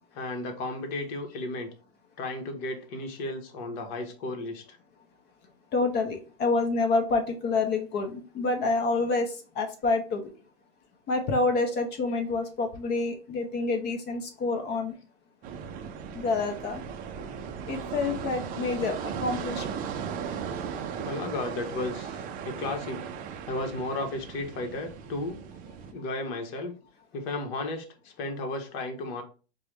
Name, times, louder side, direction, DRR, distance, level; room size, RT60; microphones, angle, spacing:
voice 1, 0.1-1.7 2.2-4.8 21.0-23.1 23.5-25.4 25.9-26.7 27.1-29.2, left 2 dB, 50° left, 5 dB, 1.1 m, -34 dB
voice 2, 5.7-10.2 11.1-14.9 16.1-16.8 17.7-19.8, left 3 dB, 30° left, 5 dB, 0.8 m, -28 dB
sound 1, 15.4-25.9, right 7 dB, 25° right, 0.5 m, -37 dB
4.6 x 2.3 x 3.1 m, 0.36 s
hypercardioid pair, 110°, 33 cm